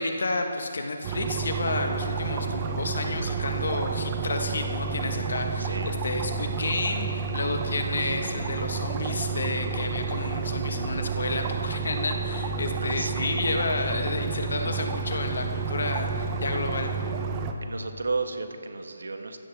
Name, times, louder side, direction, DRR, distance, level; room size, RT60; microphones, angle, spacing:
voice 1, 0.0-16.9, left 2 dB, 70° left, 4 dB, 1.5 m, -30 dB
sound 1, 1.0-17.5, right 5 dB, 20° right, 0.7 m, -30 dB
voice 2, 5.6-5.9 12.7-13.3 17.6-19.4, right 3 dB, 85° right, 6 dB, 1.4 m, -33 dB
15.5 x 13.0 x 3.6 m, 2.5 s
hypercardioid pair, 165°, 0 cm